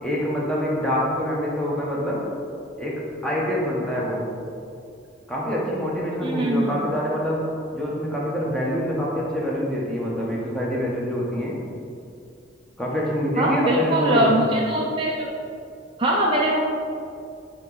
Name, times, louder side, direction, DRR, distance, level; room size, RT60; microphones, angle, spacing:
voice 1, 0.0-2.2 2.8-4.2 5.3-7.4 7.7-11.6 12.8-14.4, equal, 5° left, -5 dB, 1.0 m, -25 dB
voice 2, 6.2-6.8 13.4-15.3 16.0-16.6, right 1 dB, 30° right, -3 dB, 0.5 m, -21 dB
8.6 x 3.1 x 3.9 m, 2.5 s
head